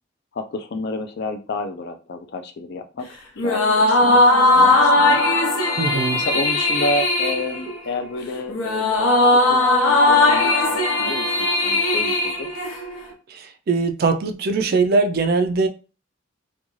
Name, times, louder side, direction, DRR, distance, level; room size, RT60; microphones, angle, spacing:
voice 1, 0.3-3.1 3.4-4.2 4.5-5.2 6.1-12.5, left 2 dB, 55° left, 0.4 m, -30 dB
sound 1, 3.4-13.1, left 2 dB, 90° left, 0.7 m, -18 dB
voice 2, 5.8-6.2 13.3-15.7, right 4 dB, 50° right, 0.3 m, -21 dB
2.5 x 2.3 x 3.0 m
head